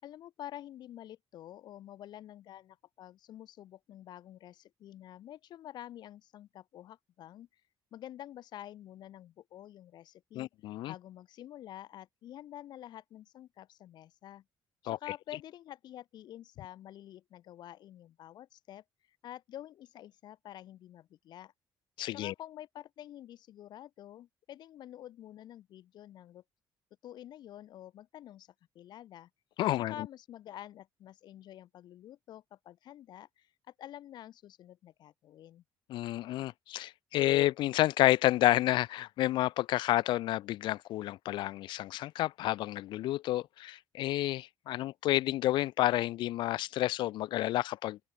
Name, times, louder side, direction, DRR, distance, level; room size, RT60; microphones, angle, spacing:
voice 1, 0.0-7.6 7.9-10.5 10.9-14.4 14.8-18.8 19.2-21.5 22.1-26.4 27.0-29.3 29.7-35.6, left 12 dB, 65° left, 4.6 m, -48 dB
voice 2, 10.3-10.9 14.9-15.0 22.0-22.3 29.6-29.9 35.9-48.0, left 15 dB, 80° left, 0.7 m, -30 dB
open air
cardioid pair, 160°, 8 cm